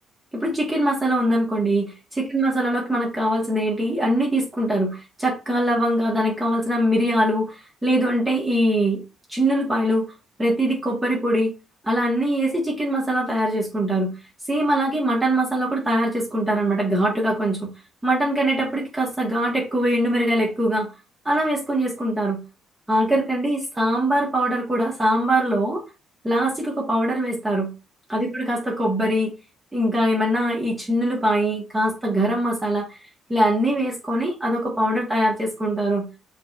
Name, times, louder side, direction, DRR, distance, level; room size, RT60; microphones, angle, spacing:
voice 1, 0.3-9.0 9.3-10.0 10.4-11.5 11.8-14.2 14.5-17.7 18.0-20.9 21.2-22.4 22.9-25.8 26.2-27.7 28.1-29.3 29.7-33.0 33.3-36.1, right 1 dB, 15° right, -3 dB, 1.5 m, -22 dB
5.8 x 3.3 x 2.5 m, 0.30 s
cardioid pair, 95°, 0 cm